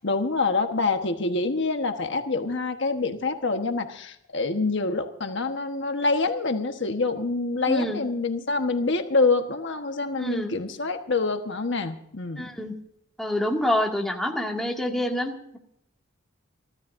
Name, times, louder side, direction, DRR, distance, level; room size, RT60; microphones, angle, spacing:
voice 1, 0.0-12.5, left 3 dB, 65° left, 6 dB, 1.3 m, -26 dB
voice 2, 7.7-8.0 10.2-10.6 12.4-12.7 13.2-15.6, left 1 dB, ahead, 0 dB, 2.1 m, -27 dB
30.0 x 12.5 x 2.6 m, 0.74 s
head